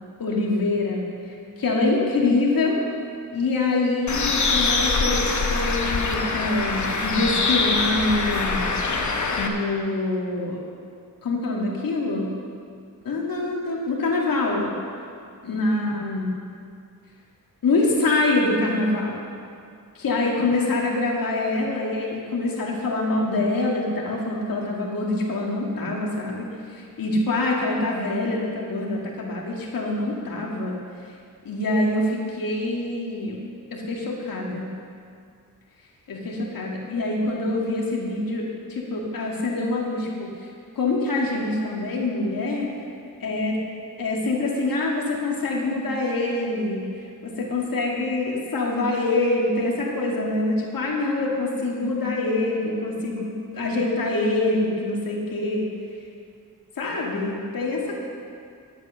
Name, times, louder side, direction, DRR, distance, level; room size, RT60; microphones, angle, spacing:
voice 1, 0.2-2.8 3.3-9.0 9.4-10.6 11.2-12.3 13.0-14.7 15.4-16.3 17.6-19.2 19.9-30.8 31.4-33.4 33.7-34.7 36.1-40.5 40.8-42.7 43.2-43.6 44.0-46.9 47.2-55.7 56.8-58.1, left 2 dB, 80° left, -2 dB, 2.3 m, -25 dB
Bird, 4.1-9.5, left 3 dB, 55° left, 1.1 m, -24 dB
11.0 x 9.0 x 6.4 m, 2.3 s
wide cardioid pair, 105°, 34 cm